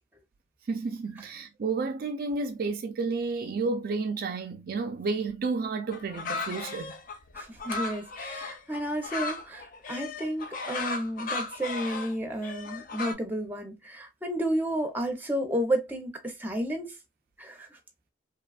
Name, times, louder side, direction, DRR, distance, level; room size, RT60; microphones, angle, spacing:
voice 1, 0.7-6.9, right 4 dB, 55° right, 0.3 m, -31 dB
sound 1, 5.9-13.1, left 3 dB, 50° left, 0.5 m, -36 dB
voice 2, 7.3-17.0 17.4-17.8, right 1 dB, 10° right, 0.6 m, -32 dB
2.8 x 2.3 x 2.3 m
head